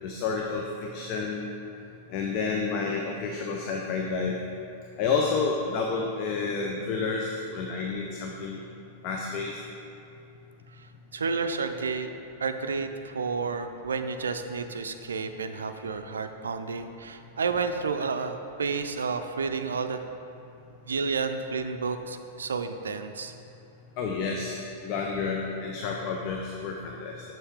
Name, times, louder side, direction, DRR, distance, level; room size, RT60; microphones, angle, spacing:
voice 1, 0.0-0.6 0.9-1.5 2.1-4.4 5.0-8.6 9.0-9.5 24.0-27.2, left 4 dB, 45° left, 0 dB, 0.6 m, -30 dB
voice 2, 11.1-12.1 12.4-20.0 20.9-23.3, right 4 dB, 75° right, 8 dB, 0.4 m, -31 dB
6.9 x 5.7 x 3.6 m, 2.6 s
figure-of-eight pair, 95°, 0 cm